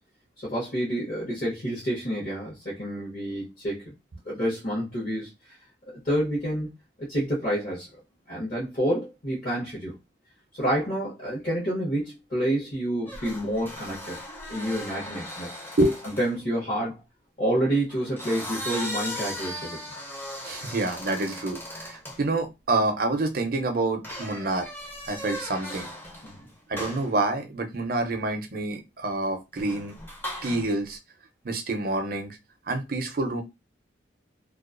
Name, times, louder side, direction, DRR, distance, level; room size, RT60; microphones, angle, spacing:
voice 1, 0.4-3.9 4.2-5.6 5.9-6.7 7.0-7.9 8.3-9.9 10.5-14.2 14.5-15.5 16.0-17.0 17.4-19.8 26.2-26.5, right 1 dB, 45° left, -6 dB, 0.8 m, -28 dB
sound 1, 13.1-16.4 17.9-22.2 24.0-26.4 26.8-27.1 29.5-30.7, equal, 10° left, 0.5 m, -38 dB
voice 2, 15.8-16.1 20.4-24.7 25.1-25.9 26.7-29.9 30.4-31.0 31.4-32.4 32.7-33.4, right 2 dB, 50° right, 5 dB, 0.5 m, -27 dB
2.4 x 2.3 x 2.4 m, 0.24 s
head